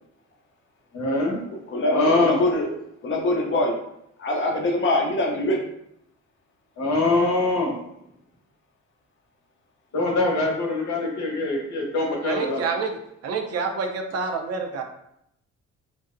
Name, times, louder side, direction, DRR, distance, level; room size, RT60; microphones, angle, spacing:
voice 1, 0.9-1.4 1.9-2.4 6.8-7.7 9.9-12.6, left 2 dB, 70° left, -2 dB, 0.9 m, -23 dB
voice 2, 1.5-2.7 3.0-3.8 4.2-5.6, left 1 dB, 40° left, 0 dB, 0.6 m, -23 dB
voice 3, 12.1-14.8, right 4 dB, 55° right, 4 dB, 0.4 m, -28 dB
2.5 x 2.0 x 2.4 m, 0.77 s
cardioid pair, 90°, 30 cm